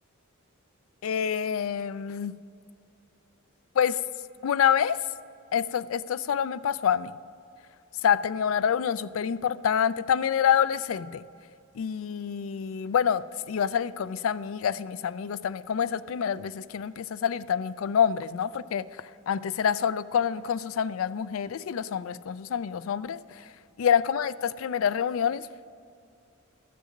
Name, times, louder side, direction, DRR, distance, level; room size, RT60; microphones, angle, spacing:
voice 1, 1.0-2.3 3.8-4.0 4.4-5.0 5.5-7.1 8.0-11.2 11.8-18.9 19.3-23.2 23.8-25.5, left 8 dB, 70° left, 16 dB, 0.4 m, -27 dB
12.5 x 6.7 x 6.4 m, 2.4 s
head